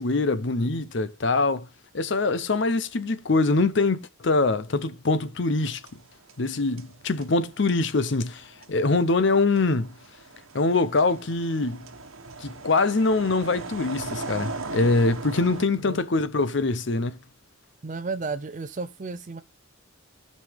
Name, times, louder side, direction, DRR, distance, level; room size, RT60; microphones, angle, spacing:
voice 1, 0.0-1.7 1.9-5.8 6.4-9.9 10.5-11.9 12.4-17.1, left 3 dB, 60° left, 0.7 m, -24 dB
sound 1, 5.6-6.5 6.8-15.6, right 3 dB, 80° right, 1.1 m, -39 dB
voice 2, 17.8-19.4, right 4 dB, 35° right, 0.5 m, -33 dB
16.0 x 5.4 x 3.5 m
head